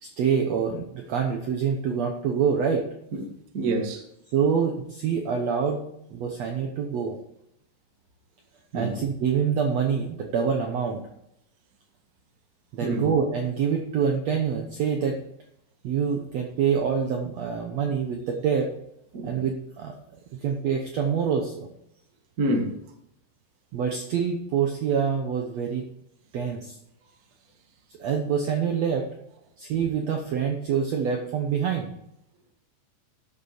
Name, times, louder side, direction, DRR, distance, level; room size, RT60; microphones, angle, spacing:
voice 1, 0.0-2.9 4.3-5.8 6.1-7.2 8.7-11.0 12.7-15.2 15.8-18.7 19.2-20.0 20.4-21.7 23.7-25.9 26.3-26.8 28.0-29.1 29.6-31.9, right 7 dB, 65° right, 1.8 m, -26 dB
voice 2, 3.5-4.0 8.7-8.9 12.8-13.0 19.1-19.4 22.4-22.8, right 2 dB, 35° right, 1.5 m, -27 dB
12.5 x 6.6 x 5.1 m
omnidirectional pair, 4.1 m